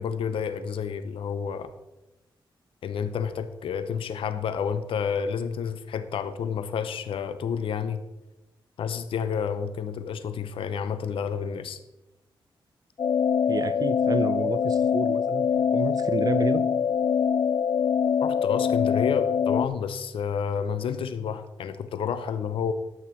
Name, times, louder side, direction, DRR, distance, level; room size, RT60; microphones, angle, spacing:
voice 1, 0.0-1.7 2.8-8.0 8.8-11.8 18.2-22.7, left 7 dB, 85° left, 11 dB, 0.7 m, -30 dB
sound 1, 13.0-19.7, left 7 dB, 50° left, 0.3 m, -24 dB
voice 2, 13.5-15.5 15.7-16.6, right 5 dB, 45° right, 12 dB, 0.8 m, -30 dB
12.0 x 8.3 x 4.5 m, 0.98 s
wide cardioid pair, 115°, 9 cm